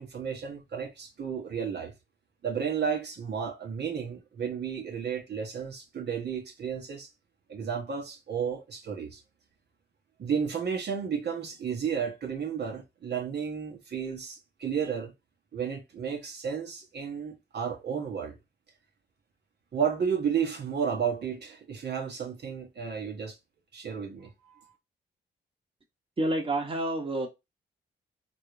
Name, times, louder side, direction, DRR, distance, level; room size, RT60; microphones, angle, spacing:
voice 1, 0.0-1.9 2.4-7.1 7.5-9.2 10.2-15.1 15.5-18.4 19.7-23.4 23.7-24.7, right 7 dB, 60° right, 1.2 m, -32 dB
voice 2, 26.2-27.3, right 1 dB, 30° right, 1.3 m, -28 dB
4.0 x 2.7 x 4.7 m
cardioid pair, 80°, 19 cm